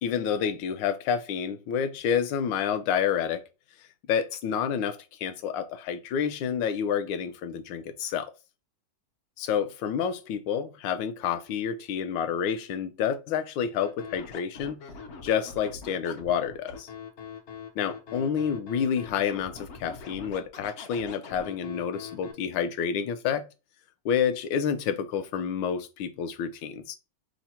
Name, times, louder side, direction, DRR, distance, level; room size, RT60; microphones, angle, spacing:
voice 1, 0.0-3.4 4.1-8.3 9.4-14.8 15.2-16.9 17.8-23.5 24.0-27.0, left 7 dB, 75° left, 1.3 m, -29 dB
Scratching (performance technique), 13.8-22.3, left 5 dB, 60° left, 0.7 m, -43 dB
5.6 x 2.1 x 4.3 m
omnidirectional pair, 2.1 m